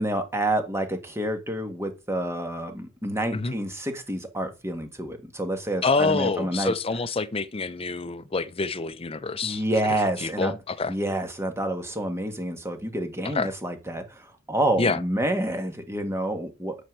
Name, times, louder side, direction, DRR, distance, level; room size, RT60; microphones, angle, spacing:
voice 1, 0.0-6.7 9.4-10.5 10.9-16.8, right 1 dB, 10° right, 1.8 m, -28 dB
voice 2, 5.8-9.6 10.2-10.9 13.3-13.5 14.8-15.0, left 4 dB, 25° left, 0.6 m, -26 dB
11.0 x 4.5 x 7.6 m
head